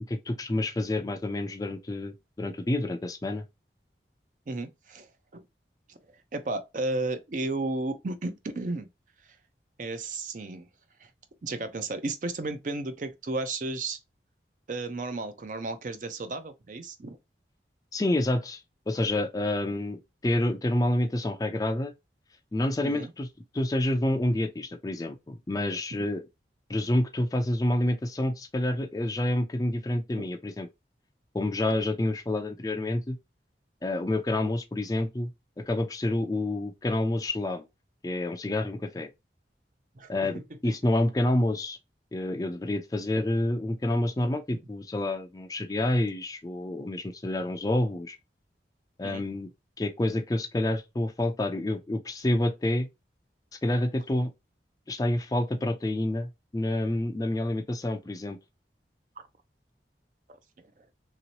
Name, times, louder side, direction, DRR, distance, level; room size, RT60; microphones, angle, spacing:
voice 1, 0.1-3.4 17.9-18.6 18.9-20.0 20.2-21.9 22.5-23.3 23.5-26.2 26.7-30.7 31.3-33.2 33.8-35.3 35.6-37.7 38.0-39.1 40.1-41.8 42.1-48.2 49.0-49.5 49.8-52.9 53.6-54.3 54.9-58.4, left 1 dB, 20° left, 0.4 m, -28 dB
voice 2, 4.5-5.1 5.3-5.4 5.9-6.0 6.3-8.9 9.8-10.7 11.0-11.1 11.4-14.0 14.7-17.2 22.8-23.1 25.9-26.0 30.2-30.3 40.0-40.1 49.0-49.2 59.2-59.3, right 2 dB, 45° right, 0.5 m, -33 dB
3.0 x 2.9 x 2.8 m
head